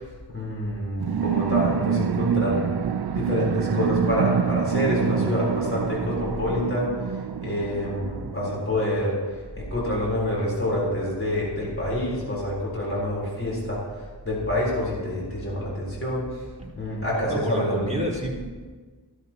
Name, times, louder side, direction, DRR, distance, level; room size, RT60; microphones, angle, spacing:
voice 1, 0.3-2.6 3.1-6.9 7.4-9.2 9.6-13.8 14.2-16.4 16.7-17.9, left 1 dB, 30° left, -5 dB, 3.8 m, -27 dB
sound 1, 1.0-9.2, right 7 dB, 60° right, 0.5 m, -27 dB
voice 2, 17.2-18.4, right 1 dB, 15° right, -5 dB, 4.0 m, -29 dB
15.0 x 13.5 x 2.9 m, 1.4 s
wide cardioid pair, 60°, 42 cm